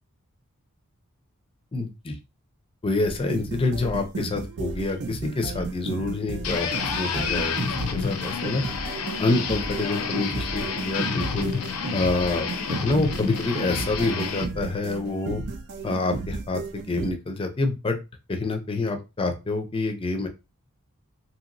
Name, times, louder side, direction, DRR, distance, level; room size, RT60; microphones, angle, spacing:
voice 1, 1.7-2.1 2.8-7.6 7.9-8.6 9.2-11.5 11.9-12.5 12.8-15.4 15.8-18.0 18.3-20.3, left 2 dB, 25° left, 6 dB, 0.5 m, -27 dB
sound 1, 3.1-17.1, right 4 dB, 50° right, 0.5 m, -34 dB
sound 2, 6.4-14.5, left 6 dB, 80° left, 0.5 m, -29 dB
2.9 x 2.8 x 2.5 m, 0.27 s
head